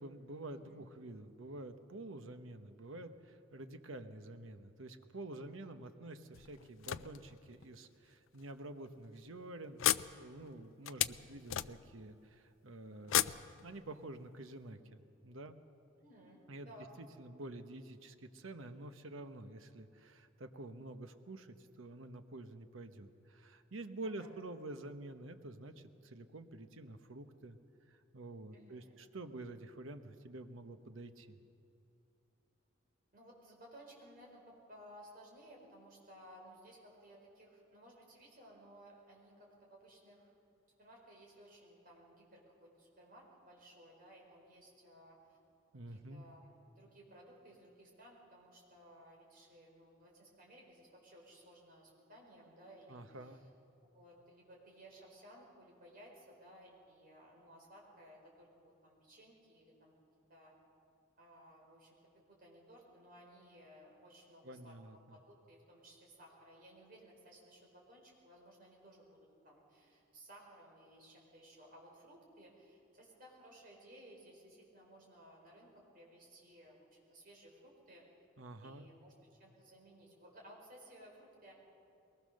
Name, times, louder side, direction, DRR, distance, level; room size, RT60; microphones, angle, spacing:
voice 1, 0.0-13.3 13.6-15.6 16.5-16.7 17.0-27.6 27.9-31.4 45.7-46.2 52.9-53.4 64.4-65.2 78.4-78.9, right 2 dB, 80° right, 8 dB, 1.1 m, -49 dB
sound 1, 6.3-7.7 8.4-8.5 8.9-9.0 9.8-12.1 13.0-14.2, left 12 dB, 75° left, 0.4 m, -36 dB
voice 2, 10.8-11.3 13.1-13.3 16.0-16.4 16.6-16.9 24.0-24.3 28.5-29.0 33.1-40.3 40.8-45.4 45.9-53.5 53.9-59.9 60.3-60.5 61.2-62.0 62.3-64.8 65.1-69.2 69.4-78.0 78.6-81.5, right 1 dB, 45° right, -2 dB, 4.6 m, -59 dB
21.5 x 19.5 x 6.5 m, 2.7 s
head